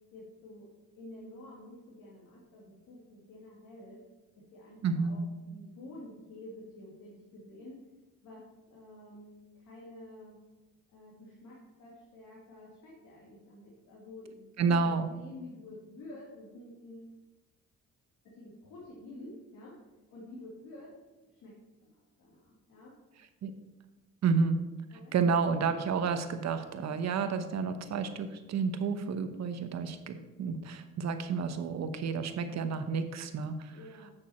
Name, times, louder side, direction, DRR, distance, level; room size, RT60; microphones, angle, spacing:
voice 1, 0.1-0.7 0.9-4.0 4.5-7.8 8.2-10.4 10.9-17.1 18.2-19.7 20.1-20.9 21.3-21.5 21.8-22.9 24.3-24.5 24.9-25.1 33.7-34.1, left 1 dB, 75° left, -5 dB, 2.4 m, -49 dB
voice 2, 4.8-5.2 14.6-15.1 23.4-23.5 24.2-24.6 25.1-33.7, right 5 dB, 60° right, 8 dB, 1.0 m, -30 dB
8.7 x 6.4 x 4.2 m, 1.1 s
cardioid pair, 90°, 30 cm